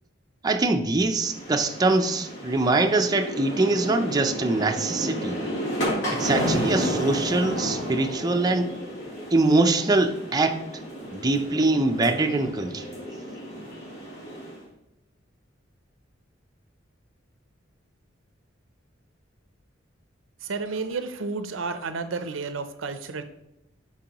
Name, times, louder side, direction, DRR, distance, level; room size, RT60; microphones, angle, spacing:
voice 1, 0.4-5.4 6.1-8.7 9.3-10.6 11.1-12.9, right 2 dB, 20° right, 4 dB, 0.5 m, -23 dB
sound 1, 1.1-14.6, equal, 65° left, 2.9 m, -32 dB
voice 2, 20.4-23.2, right 4 dB, 75° right, 10 dB, 0.6 m, -31 dB
11.5 x 4.7 x 2.9 m, 0.89 s
head